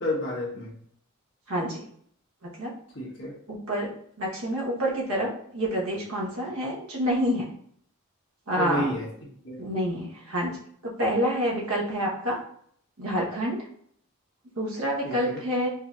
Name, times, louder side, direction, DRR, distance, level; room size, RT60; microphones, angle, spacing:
voice 1, 0.0-0.7 2.9-3.3 8.6-9.1 9.4-9.6 15.0-15.4, left 1 dB, 55° left, -4 dB, 1.3 m, -30 dB
voice 2, 1.5-1.8 2.4-2.7 3.5-7.5 8.5-8.9 9.6-10.6 10.8-12.4 13.0-13.7 14.6-15.7, equal, 80° right, -3 dB, 1.1 m, -28 dB
4.6 x 2.7 x 2.4 m, 0.63 s
head